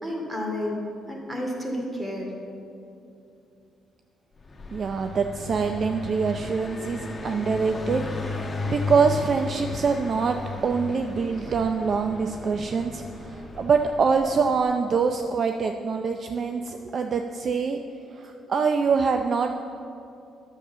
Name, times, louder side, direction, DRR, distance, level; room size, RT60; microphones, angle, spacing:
voice 1, 0.0-0.8 1.1-2.3, left 1 dB, 15° right, 0 dB, 2.4 m, -31 dB
Car passing by, 4.4-15.0, left 4 dB, 30° left, 1.2 m, -35 dB
voice 2, 4.7-10.4 10.6-17.8 18.1-19.5, right 5 dB, 50° right, 6 dB, 0.5 m, -25 dB
10.0 x 7.2 x 6.9 m, 2.6 s
cardioid pair, 90°, 0 cm